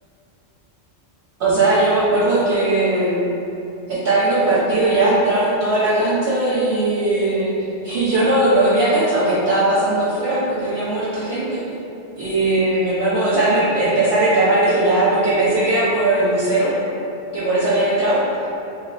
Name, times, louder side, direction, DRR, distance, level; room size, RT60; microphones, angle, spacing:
voice 1, 1.4-3.3 3.9-7.5 7.8-11.6 12.2-16.7 17.3-18.2, right 2 dB, 70° right, -9 dB, 1.0 m, -18 dB
3.9 x 3.2 x 3.1 m, 2.9 s
omnidirectional pair, 1.1 m